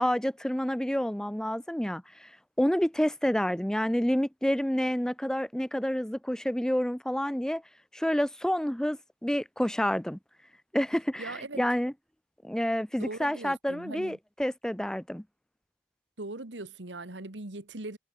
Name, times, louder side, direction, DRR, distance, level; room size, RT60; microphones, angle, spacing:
voice 1, 0.0-2.3 2.6-7.6 7.9-10.2 10.7-11.9 12.4-15.2, equal, 5° left, 0.6 m, -29 dB
voice 2, 11.2-11.6 13.0-14.2 16.2-18.0, right 2 dB, 80° right, 2.0 m, -40 dB
head